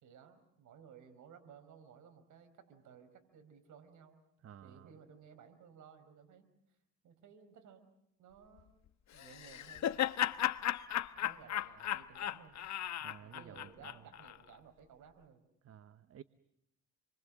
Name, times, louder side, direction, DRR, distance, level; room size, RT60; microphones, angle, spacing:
voice 1, 0.0-4.2 4.6-6.5 7.0-7.9 8.2-8.7 9.1-10.1 11.2-12.6 13.2-15.4, right 7 dB, 75° right, 8 dB, 4.9 m, -58 dB
voice 2, 4.4-4.9 13.0-13.7 15.6-16.2, right 9 dB, 50° right, 13 dB, 1.0 m, -53 dB
Laughter, 9.2-14.4, left 11 dB, 65° left, 1.1 m, -36 dB
29.0 x 24.0 x 7.5 m, 0.79 s
cardioid pair, 90°, 30 cm